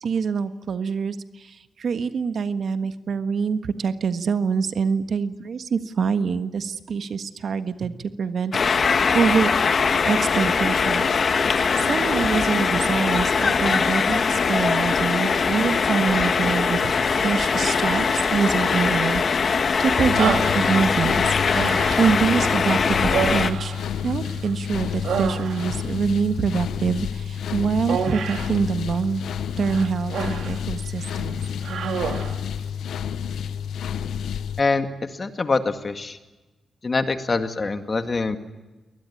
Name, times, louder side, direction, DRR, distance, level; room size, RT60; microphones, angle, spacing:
voice 1, 0.0-9.5 10.1-11.1 11.4-21.2 22.0-23.7 24.0-29.2 29.6-31.4, right 6 dB, 65° right, 10 dB, 1.4 m, -25 dB
sound 1, 8.5-23.5, left 5 dB, 50° left, 1.5 m, -21 dB
sound 2, 20.0-34.6, left 8 dB, 90° left, 0.9 m, -30 dB
Human voice, 20.2-21.1 21.5-22.3 23.1-24.5 24.8-25.9 27.9-28.6 29.6-30.6 31.0-31.2 31.6-32.4, right 7 dB, 85° right, 2.3 m, -28 dB
voice 2, 35.2-36.2 36.8-38.4, left 3 dB, 35° left, 8 dB, 2.1 m, -24 dB
22.5 x 20.0 x 9.9 m, 1.1 s
cardioid pair, 95°, 0 cm